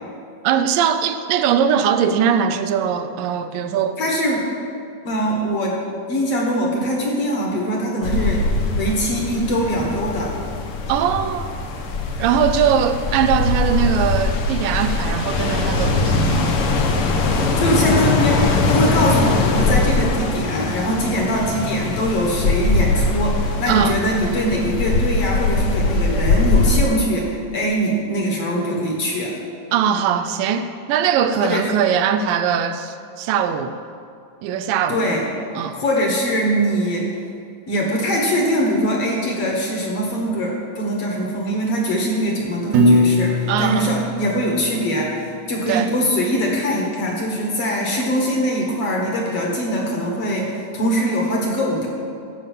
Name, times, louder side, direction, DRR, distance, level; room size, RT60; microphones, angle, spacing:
voice 1, 0.4-4.0 10.9-11.5 12.2-16.6 23.7-24.0 29.7-33.8 34.4-35.1 35.6-35.8 43.5-43.9 45.7-45.9, right 8 dB, 85° right, 9 dB, 2.3 m, -20 dB
voice 2, 4.0-4.4 5.1-5.8 6.1-8.4 8.7-10.4 17.6-29.3 31.4-31.7 34.9-35.3 35.7-37.1 37.7-51.9, equal, 55° left, -1 dB, 2.1 m, -22 dB
sound 1, 8.0-26.8, left 3 dB, 85° left, 1.2 m, -21 dB
Piano, 42.7-44.9, left 1 dB, 65° right, 2.4 m, -19 dB
15.0 x 5.4 x 7.3 m, 2.4 s
omnidirectional pair, 3.8 m